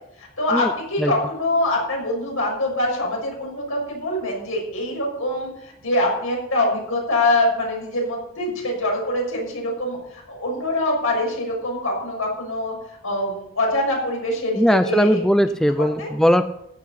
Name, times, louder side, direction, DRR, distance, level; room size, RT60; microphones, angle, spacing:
voice 1, 0.2-15.2 15.8-16.1, left 1 dB, 75° left, -1 dB, 6.5 m, -24 dB
voice 2, 14.6-16.4, equal, ahead, 9 dB, 0.4 m, -18 dB
14.5 x 10.5 x 5.8 m, 0.77 s
head